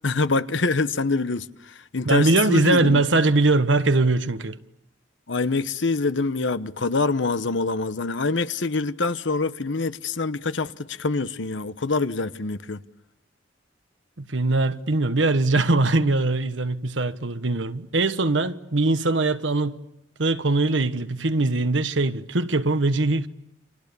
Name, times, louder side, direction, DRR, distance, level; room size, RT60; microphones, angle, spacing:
voice 1, 0.0-3.0 5.3-12.8, left 3 dB, 85° left, 1.0 m, -25 dB
voice 2, 2.0-4.6 14.2-19.8 20.2-23.3, right 2 dB, 90° right, 1.3 m, -21 dB
30.0 x 27.0 x 7.0 m
head